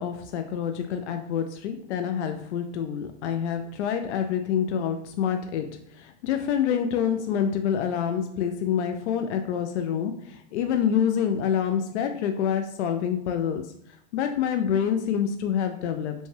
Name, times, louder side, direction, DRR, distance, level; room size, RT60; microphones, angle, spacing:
voice 1, 0.0-13.7 14.1-16.1, left 8 dB, 85° left, 6 dB, 0.5 m, -27 dB
5.2 x 2.3 x 3.3 m, 0.68 s
supercardioid pair, 175°, 33 cm